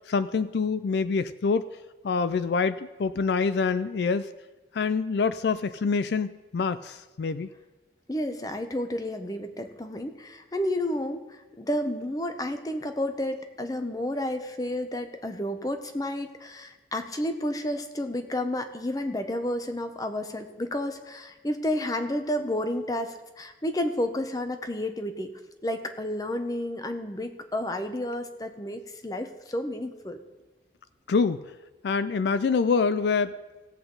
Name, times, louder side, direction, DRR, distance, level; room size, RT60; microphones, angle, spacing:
voice 1, 0.1-1.6 2.0-4.3 4.7-7.5 31.1-31.4 31.8-33.3, left 5 dB, 75° left, 14 dB, 0.4 m, -26 dB
voice 2, 8.1-25.3 25.6-30.2, left 1 dB, 20° left, 7 dB, 0.8 m, -31 dB
17.5 x 7.9 x 3.9 m, 1.2 s
head